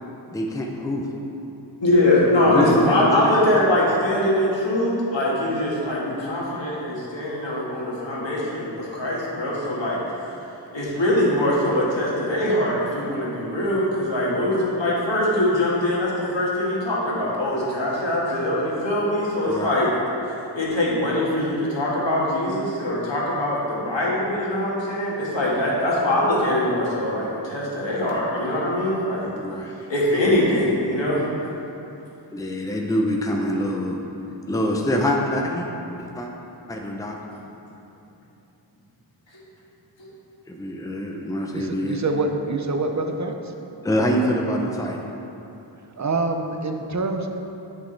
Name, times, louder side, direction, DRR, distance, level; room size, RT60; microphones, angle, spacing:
voice 1, 0.3-1.1 2.4-3.3 5.9-6.0 19.5-19.7 29.4-29.7 32.3-34.0 34.5-35.7 36.0-36.3 36.7-37.2 40.5-42.0 43.8-45.0, equal, 10° left, 0 dB, 0.6 m, -25 dB
voice 2, 1.8-10.0 10.3-10.4 10.7-19.9 20.2-29.3 29.9-31.2, left 1 dB, 75° left, -5 dB, 1.7 m, -22 dB
voice 3, 41.5-43.3 46.0-47.3, right 3 dB, 40° right, 5 dB, 0.6 m, -25 dB
8.8 x 6.3 x 3.3 m, 2.9 s
wide cardioid pair, 70°, 45 cm